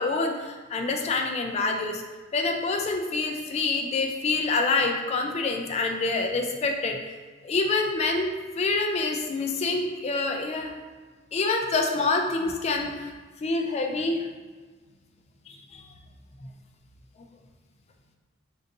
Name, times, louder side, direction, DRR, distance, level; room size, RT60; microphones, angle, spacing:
voice 1, 0.0-2.0 2.3-7.0 7.4-10.7 11.3-13.1 13.4-14.3 15.5-15.8, left 3 dB, 30° left, 3 dB, 0.3 m, -26 dB
3.7 x 2.5 x 2.6 m, 1.4 s
head